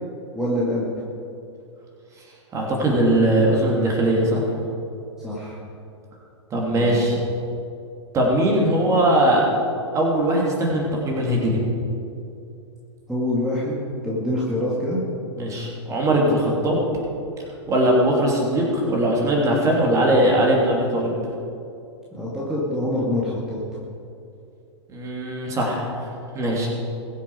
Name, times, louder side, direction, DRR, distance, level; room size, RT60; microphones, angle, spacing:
voice 1, 0.3-0.9 5.2-5.6 6.8-7.0 13.1-13.7 14.0-15.0 22.1-23.6, left 1 dB, 5° right, -7 dB, 2.2 m, -25 dB
voice 2, 2.5-4.4 6.5-7.2 8.1-9.5 9.9-11.6 15.3-16.9 17.7-21.1 24.9-25.9 26.3-26.7, right 1 dB, 20° right, -2 dB, 3.0 m, -20 dB
21.0 x 7.3 x 5.0 m, 2.6 s
figure-of-eight pair, 105°, 15 cm